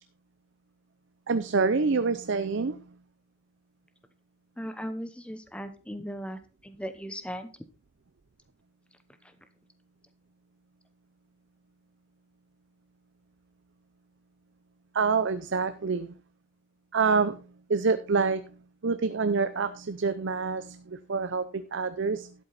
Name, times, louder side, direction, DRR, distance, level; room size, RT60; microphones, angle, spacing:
voice 1, 1.3-2.9 14.9-16.1 16.9-17.4 17.7-18.6 18.8-22.3, right 4 dB, 60° right, 11 dB, 0.6 m, -27 dB
voice 2, 4.6-7.5 9.2-9.3, equal, 5° left, 10 dB, 0.9 m, -38 dB
12.0 x 8.0 x 4.1 m, 0.35 s
head